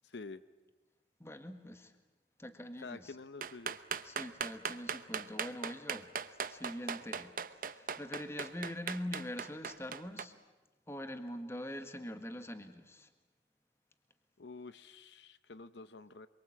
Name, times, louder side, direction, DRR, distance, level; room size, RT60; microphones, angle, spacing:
voice 1, 0.0-0.4 2.8-3.8 14.4-16.3, left 3 dB, 75° left, 13 dB, 0.8 m, -48 dB
voice 2, 1.2-1.9 2.4-3.1 4.0-6.1 6.5-7.3 7.6-10.4 10.9-13.1, left 1 dB, 15° left, 8 dB, 1.6 m, -43 dB
sound 1, 3.4-10.2, right 6 dB, 50° right, 0.9 m, -38 dB
25.5 x 23.5 x 8.7 m, 1.2 s
head